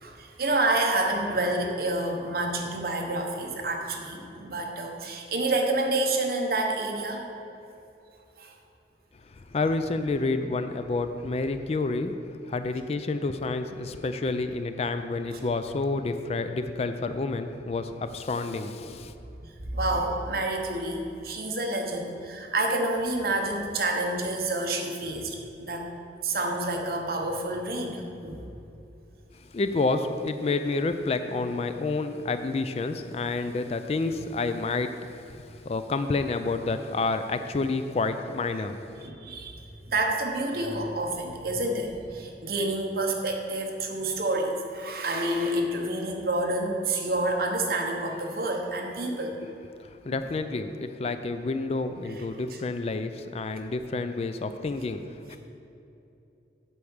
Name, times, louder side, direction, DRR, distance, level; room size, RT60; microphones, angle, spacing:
voice 1, 0.0-7.2 8.4-8.5 19.4-25.8 26.2-28.4 39.0-39.6 39.9-49.4 50.1-50.2 52.5-52.6, right 2 dB, 55° right, 2 dB, 1.0 m, -28 dB
voice 2, 9.3-12.2 12.4-19.1 29.3-38.8 49.8-55.4, left 3 dB, 35° left, 9 dB, 0.3 m, -29 dB
8.3 x 4.6 x 7.1 m, 2.9 s
head